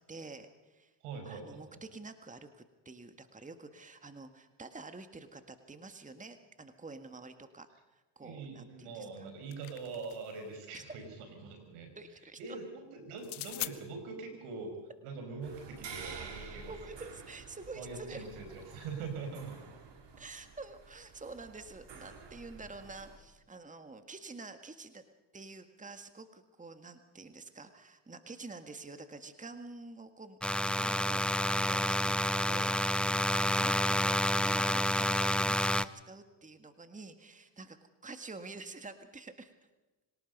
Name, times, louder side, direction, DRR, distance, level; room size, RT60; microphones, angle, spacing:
voice 1, 0.1-0.9 1.3-9.1 10.7-10.8 12.0-12.4 16.7-18.2 20.2-25.1 25.3-30.4 30.8-34.2 34.4-37.8 38.0-39.5, right 3 dB, 15° right, 8 dB, 1.8 m, -48 dB
voice 2, 1.0-1.6 8.2-11.0 11.4-11.9 12.4-17.0 17.7-19.6, right 4 dB, 85° right, 5 dB, 5.5 m, -43 dB
sound 1, 9.1-10.4 13.2-13.8, left 17 dB, 65° left, 1.1 m, -41 dB
sound 2, 15.4-23.2, right 5 dB, 55° right, 4.0 m, -50 dB
sound 3, 30.4-35.8, left 1 dB, ahead, 0.6 m, -29 dB
26.0 x 18.5 x 5.4 m, 1.1 s
supercardioid pair, 70°, 50 cm